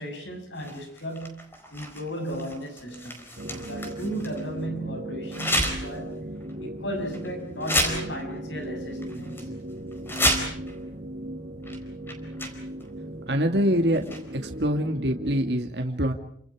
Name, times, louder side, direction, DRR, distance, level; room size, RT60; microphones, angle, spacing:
voice 1, 0.0-3.2 3.7-6.2 6.6-9.6, equal, 80° left, 7.4 m, -35 dB
sound 1, 0.6-4.4 5.3-6.0 6.4-6.5 7.1-7.3 7.6-8.6 9.0-9.4 9.9-10.8 11.6-11.8 12.1-12.9 13.9-14.5, equal, 15° left, 4.5 m, -30 dB
sound 2, 3.4-15.4, right 1 dB, 50° right, 2.1 m, -37 dB
voice 2, 13.0-14.0 14.3-16.1, equal, 65° right, 2.1 m, -25 dB
30.0 x 26.5 x 4.9 m
head